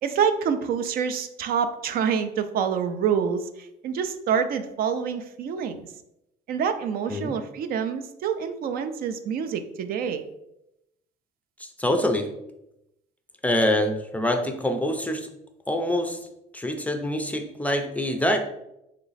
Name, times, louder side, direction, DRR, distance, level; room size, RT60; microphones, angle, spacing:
voice 1, 0.0-5.9 6.5-10.2, right 7 dB, 60° right, 10 dB, 0.4 m, -27 dB
voice 2, 11.6-12.3 13.4-15.3 15.7-16.3 16.5-18.4, left 1 dB, 10° left, 5 dB, 0.4 m, -25 dB
3.1 x 2.9 x 4.0 m, 0.86 s
cardioid pair, 110°, 17 cm